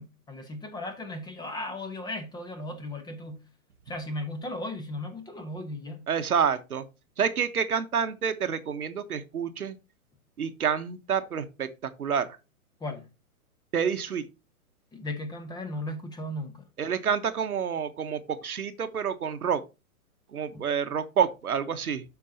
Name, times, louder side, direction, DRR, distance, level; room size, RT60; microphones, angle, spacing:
voice 1, 0.0-3.4 3.9-6.1 12.8-13.1 14.9-16.6 20.5-20.6, left 1 dB, 10° left, 1.0 m, -36 dB
voice 2, 6.1-6.8 7.2-9.7 10.4-12.4 13.7-14.3 16.8-19.6 20.3-22.0, right 7 dB, 80° right, 1.2 m, -28 dB
13.0 x 4.5 x 2.7 m
hypercardioid pair, 125°, 43 cm